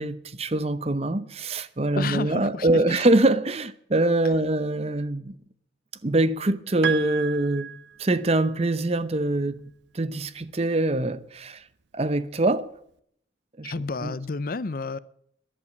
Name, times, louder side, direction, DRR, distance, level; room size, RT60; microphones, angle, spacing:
voice 1, 0.0-5.4 6.0-7.7 8.0-9.6 9.9-11.6 11.9-12.7 13.6-13.7 14.0-14.1, right 2 dB, 35° right, 0.7 m, -24 dB
voice 2, 2.0-3.0 13.6-15.0, left 3 dB, 50° left, 0.5 m, -31 dB
Piano, 6.8-8.5, right 7 dB, 70° right, 0.7 m, -33 dB
13.0 x 11.5 x 8.5 m
head